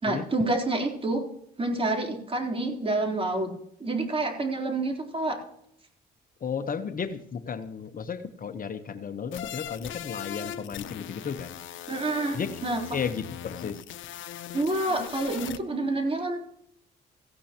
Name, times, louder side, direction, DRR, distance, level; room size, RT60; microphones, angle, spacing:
voice 1, 0.0-1.3 1.6-3.5 3.8-5.4 11.9-12.8 14.5-16.4, right 2 dB, 30° right, 2 dB, 3.7 m, -28 dB
voice 2, 6.4-11.6 12.3-12.5 12.9-13.8, left 6 dB, 45° left, 9 dB, 1.1 m, -33 dB
sound 1, 9.3-15.6, left 11 dB, 75° left, 0.9 m, -39 dB
17.5 x 15.0 x 3.0 m, 0.73 s
cardioid pair, 90°, 20 cm